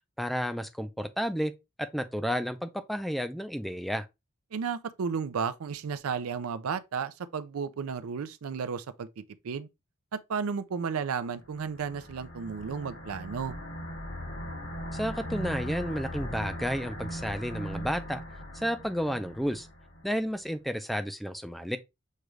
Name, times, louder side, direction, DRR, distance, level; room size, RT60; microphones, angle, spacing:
voice 1, 0.2-1.5 1.8-4.1 14.9-18.2 18.5-19.7 20.0-21.8, equal, ahead, 0.4 m, -31 dB
voice 2, 4.5-9.7 10.1-13.5, right 6 dB, 80° right, 0.4 m, -33 dB
sound 1, 11.4-20.0, equal, 90° left, 2.6 m, -39 dB
6.5 x 2.4 x 3.1 m
head